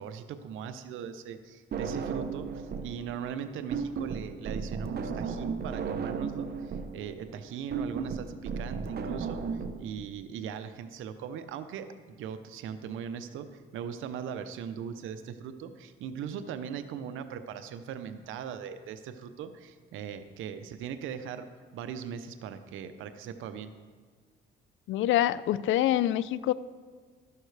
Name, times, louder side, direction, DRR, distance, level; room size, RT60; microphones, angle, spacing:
voice 1, 0.0-21.5 21.7-23.7, right 8 dB, 85° right, 10 dB, 0.7 m, -39 dB
sound 1, 1.7-3.0 3.2-9.7, right 5 dB, 55° right, 0.9 m, -34 dB
voice 2, 24.9-26.5, left 13 dB, 80° left, 18 dB, 0.4 m, -26 dB
13.0 x 11.0 x 3.3 m, 1.6 s
cardioid pair, 90°, 20 cm